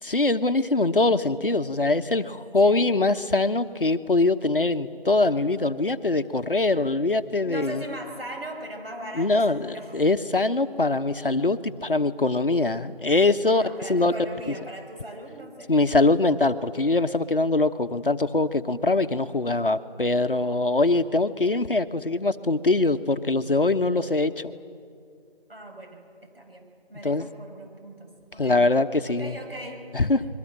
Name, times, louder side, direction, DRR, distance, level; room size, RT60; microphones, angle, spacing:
voice 1, 0.0-7.8 9.1-13.6 13.9-14.1 15.7-24.5 27.0-27.3 28.4-29.4 29.9-30.2, left 2 dB, 60° left, 10 dB, 1.1 m, -23 dB
voice 2, 7.4-10.0 13.5-16.0 25.5-26.0 26.3-28.6 29.1-29.8, right 1 dB, 70° right, 1 dB, 7.0 m, -39 dB
28.0 x 22.5 x 7.7 m, 2.3 s
figure-of-eight pair, 175°, 31 cm